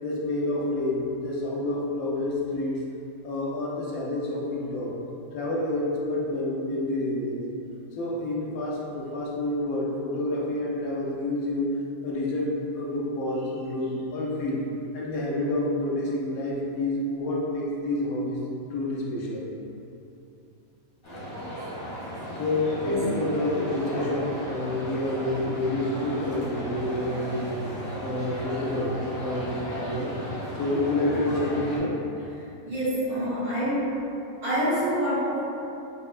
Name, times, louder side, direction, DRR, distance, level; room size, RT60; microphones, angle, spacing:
voice 1, 0.0-2.8 3.2-4.9 5.3-7.4 7.9-11.8 12.0-14.6 14.9-18.4 18.7-19.5 22.3-27.5 28.0-30.1 30.5-32.0, left 1 dB, 75° left, -4 dB, 1.1 m, -28 dB
sound 1, 21.0-31.8, equal, 30° left, 0.7 m, -35 dB
voice 2, 22.8-23.2 32.6-34.0 34.4-35.4, equal, 80° right, -12 dB, 1.8 m, -26 dB
5.5 x 2.1 x 2.4 m, 2.7 s
omnidirectional pair, 1.5 m